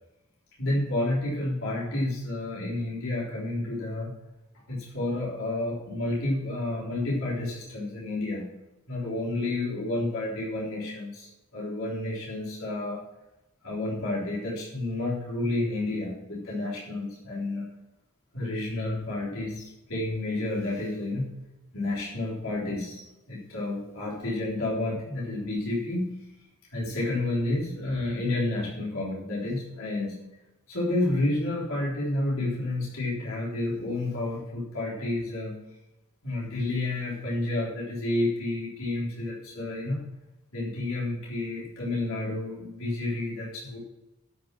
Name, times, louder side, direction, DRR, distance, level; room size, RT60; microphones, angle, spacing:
voice 1, 0.6-4.2 4.7-8.5 8.9-13.1 13.6-17.6 18.3-21.5 21.7-26.3 26.7-30.2 30.7-35.6 36.2-40.0 40.5-43.8, left 2 dB, 75° left, -6 dB, 3.7 m, -30 dB
12.5 x 6.3 x 6.0 m, 0.96 s
head